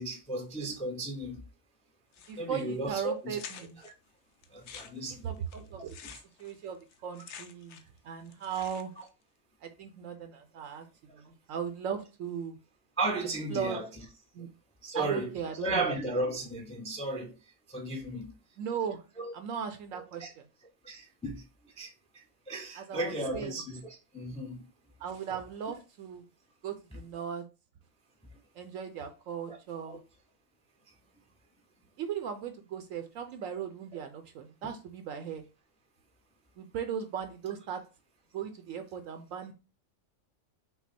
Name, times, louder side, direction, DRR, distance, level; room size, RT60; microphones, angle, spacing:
voice 1, 0.0-1.4 2.4-3.4 3.8-3.9 4.5-5.4 13.0-13.9 14.8-15.3 15.6-17.3 17.7-18.3 19.2-19.3 20.2-20.3 20.8-21.4 21.8-21.9 22.5-24.7 29.5-29.6 29.9-30.0 34.6-34.7, right 2 dB, 5° left, 0.5 m, -34 dB
sound 1, 2.1-2.6 2.9-3.0 3.3-3.9 4.4-8.0 8.2-9.1, left 7 dB, 65° left, 0.8 m, -48 dB
voice 2, 2.3-3.8 5.2-6.1 6.4-8.9 9.6-10.9 11.2-12.6 13.5-13.8 14.3-14.5 14.9-15.9 18.6-19.0 19.3-20.5 22.8-23.6 25.0-26.2 26.6-27.4 28.6-30.0 32.0-35.4 36.6-37.8 38.3-39.5, right 7 dB, 75° right, 1.0 m, -37 dB
5.9 x 2.1 x 4.1 m
omnidirectional pair, 1.4 m